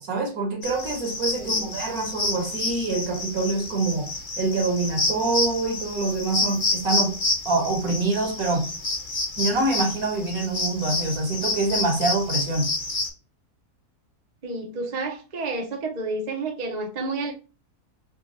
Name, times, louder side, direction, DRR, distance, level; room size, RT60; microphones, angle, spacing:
voice 1, 0.0-7.2 7.4-8.7 9.4-12.7, right 3 dB, 70° right, 1.5 m, -25 dB
sound 1, 0.6-13.1, left 2 dB, 35° left, 1.0 m, -29 dB
voice 2, 14.4-17.3, right 3 dB, 45° right, 0.6 m, -30 dB
3.6 x 2.3 x 4.0 m
omnidirectional pair, 1.7 m